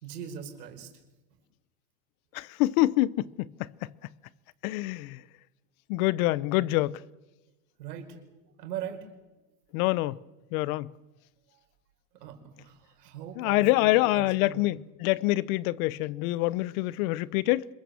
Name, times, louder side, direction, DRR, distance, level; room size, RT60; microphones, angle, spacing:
voice 1, 0.0-0.9 6.5-6.7 7.8-8.2 8.6-9.1 11.5-11.6 12.1-14.9, right 9 dB, 85° right, 5.0 m, -41 dB
voice 2, 2.3-3.5 4.6-5.2 5.9-7.0 9.7-10.2 10.5-10.9 13.4-17.7, left 18 dB, 65° left, 0.9 m, -26 dB
26.5 x 22.0 x 7.0 m
supercardioid pair, 125°, 46 cm